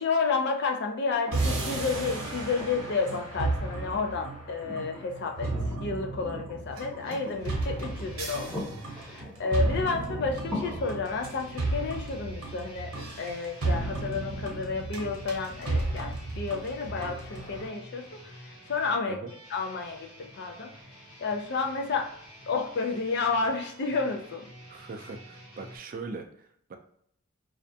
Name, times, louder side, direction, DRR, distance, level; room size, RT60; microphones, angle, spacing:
voice 1, 0.0-5.5 5.8-8.5 8.9-19.2 19.5-20.7 21.2-22.1 22.5-24.5, left 4 dB, 50° left, 4 dB, 0.4 m, -31 dB
sound 1, 1.3-15.2 17.0-17.1, left 1 dB, ahead, 0.6 m, -44 dB
sound 2, 1.3-17.7, right 2 dB, 75° right, 0.8 m, -33 dB
sound 3, 7.0-9.3 10.3-25.8, equal, 80° left, 0.8 m, -50 dB
voice 2, 9.8-10.3 19.1-19.3 24.7-26.8, right 4 dB, 40° right, 5 dB, 0.3 m, -41 dB
2.5 x 2.1 x 2.6 m, 0.66 s
head